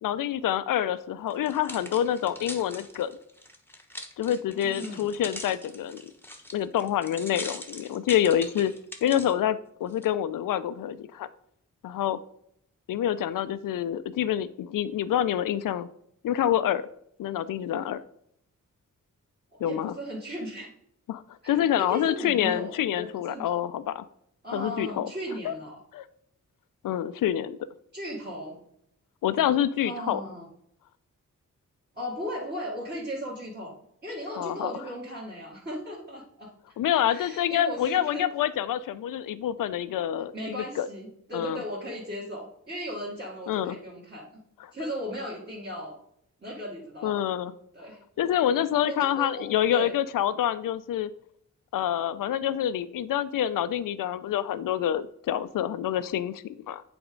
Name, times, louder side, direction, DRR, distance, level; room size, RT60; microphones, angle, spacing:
voice 1, 0.0-3.1 4.2-6.0 6.5-8.7 9.0-11.3 11.8-12.2 12.9-15.9 16.2-16.9 17.2-18.0 19.6-20.0 21.1-24.0 24.5-25.1 25.4-25.5 25.9-26.0 26.8-27.6 29.2-30.2 34.4-34.7 36.8-40.9 41.3-41.6 43.5-43.8 44.6-44.7 47.0-47.5 48.2-51.1 51.7-56.8, left 10 dB, 85° left, 15 dB, 0.5 m, -27 dB
sound 1, 1.3-9.3 9.9-10.1, left 1 dB, 5° left, 1.0 m, -42 dB
voice 2, 4.6-5.0 19.6-20.7 21.4-23.5 24.4-25.8 27.9-28.6 29.8-30.5 31.9-33.7 34.0-36.5 37.1-38.2 40.3-44.4 44.7-46.0 46.4-47.2 47.7-48.0 48.9-49.9, equal, 30° right, -7 dB, 2.2 m, -36 dB
8.2 x 3.5 x 5.1 m, 0.71 s
cardioid pair, 75°, 32 cm